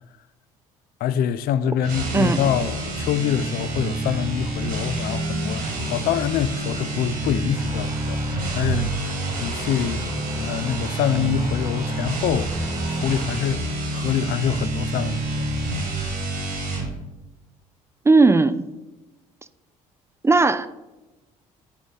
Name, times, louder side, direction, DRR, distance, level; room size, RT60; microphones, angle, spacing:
voice 1, 1.0-5.6 5.9-12.5 12.8-15.5, left 9 dB, 60° left, 0.4 m, -25 dB
sound 1, 1.8-16.9, right 2 dB, 60° right, 2.0 m, -28 dB
sound 2, 7.5-13.3, right 2 dB, 30° right, 1.3 m, -41 dB
voice 2, 18.1-18.6 20.2-20.7, right 3 dB, 15° right, 0.4 m, -16 dB
8.0 x 4.0 x 4.0 m
hypercardioid pair, 60°, 18 cm